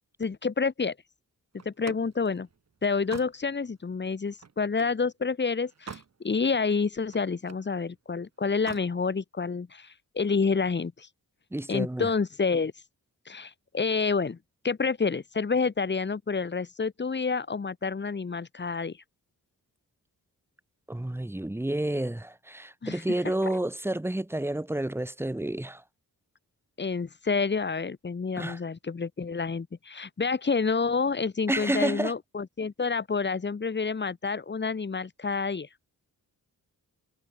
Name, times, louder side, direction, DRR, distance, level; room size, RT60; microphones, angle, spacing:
voice 1, 0.2-0.9 1.6-2.5 2.8-11.1 11.7-12.7 13.3-14.4 14.6-18.9 22.8-23.0 26.8-35.7, left 4 dB, 30° left, 1.2 m, -28 dB
Slam, 1.6-5.0 5.5-6.2 6.5-7.7 8.5-8.9, right 6 dB, 45° right, 2.4 m, -45 dB
voice 2, 11.5-12.1 20.9-25.8 28.4-28.6 31.5-32.1, right 1 dB, 5° right, 0.9 m, -30 dB
wide cardioid pair, 105°, 36 cm